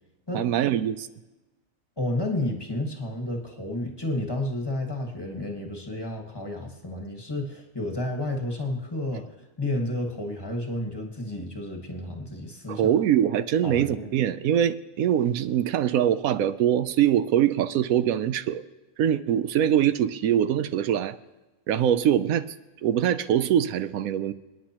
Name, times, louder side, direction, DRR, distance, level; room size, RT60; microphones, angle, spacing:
voice 1, 0.3-1.1 12.7-18.6 19.0-21.2 21.7-22.5 22.8-24.3, right 10 dB, 80° right, 13 dB, 1.0 m, -23 dB
voice 2, 2.0-9.3 9.6-12.9 13.6-14.1, left 1 dB, 15° left, 1 dB, 1.5 m, -31 dB
28.5 x 9.7 x 2.9 m, 1.1 s
omnidirectional pair, 1.5 m